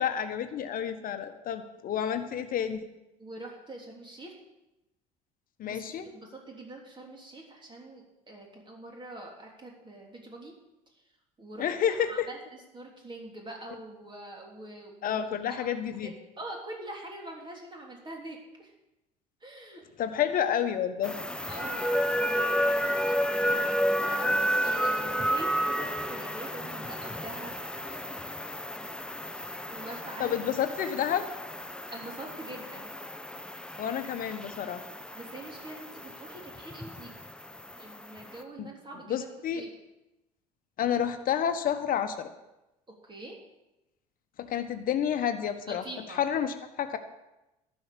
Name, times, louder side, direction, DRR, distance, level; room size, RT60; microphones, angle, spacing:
voice 1, 0.0-2.9 5.6-6.1 11.6-12.3 15.0-16.1 20.0-21.2 30.2-31.3 33.8-34.8 38.6-38.7 39.1-39.6 40.8-42.3 44.4-47.0, left 9 dB, 45° left, 9 dB, 1.2 m, -30 dB
voice 2, 3.2-4.3 5.6-10.5 11.4-11.7 12.1-12.4 12.7-16.1 16.4-18.7 19.4-19.8 21.5-24.4 24.6-28.2 29.7-30.4 31.9-32.9 35.1-37.2 37.8-39.3 39.5-39.7 43.1-43.4 45.7-46.2, right 2 dB, 25° right, 0 dB, 3.2 m, -44 dB
sound 1, 21.0-38.4, equal, 5° left, 0.8 m, -32 dB
12.0 x 5.8 x 8.5 m, 0.95 s
hypercardioid pair, 60°, 20 cm